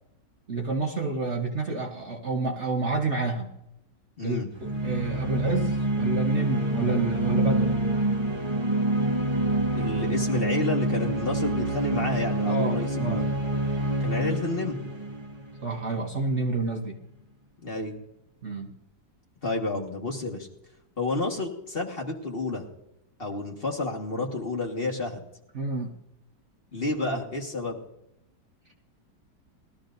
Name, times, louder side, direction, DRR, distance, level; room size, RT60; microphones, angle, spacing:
voice 1, 0.5-3.5 4.2-7.8 12.4-13.2 15.6-17.0 18.4-18.7 25.5-25.9 27.0-27.2, right 3 dB, 45° right, 1 dB, 1.2 m, -29 dB
voice 2, 4.2-4.5 9.7-13.3 14.0-14.8 17.6-18.0 19.4-20.5 21.0-22.6 23.2-25.2 26.7-27.8, left 2 dB, 35° left, 0 dB, 1.7 m, -30 dB
sound 1, 4.5-16.1, right 1 dB, 20° right, 0.7 m, -27 dB
20.5 x 13.0 x 2.6 m, 0.83 s
omnidirectional pair, 2.0 m